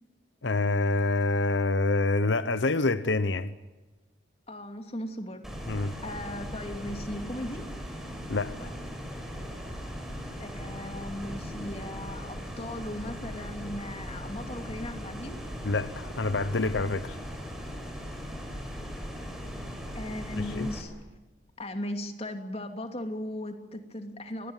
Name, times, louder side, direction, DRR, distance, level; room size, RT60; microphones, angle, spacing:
voice 1, 0.4-3.5 5.7-6.0 8.3-8.7 15.6-17.2 20.4-20.7, left 3 dB, 85° left, 1.0 m, -27 dB
voice 2, 4.5-5.4 6.0-7.6 10.4-15.4 19.9-20.9 21.6-24.5, left 1 dB, 35° left, 2.9 m, -37 dB
sound 1, 5.4-20.8, equal, ahead, 5.3 m, -39 dB
24.5 x 20.0 x 9.0 m
head